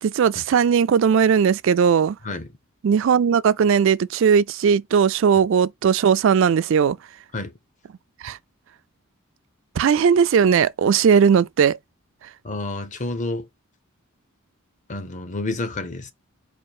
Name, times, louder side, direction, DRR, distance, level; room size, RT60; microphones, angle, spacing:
voice 1, 0.0-2.2 2.8-7.0 8.2-8.4 9.8-11.8, right 7 dB, 60° right, 0.3 m, -18 dB
voice 2, 12.4-13.5 14.9-16.1, left 2 dB, 35° left, 0.7 m, -29 dB
4.3 x 2.5 x 4.6 m
head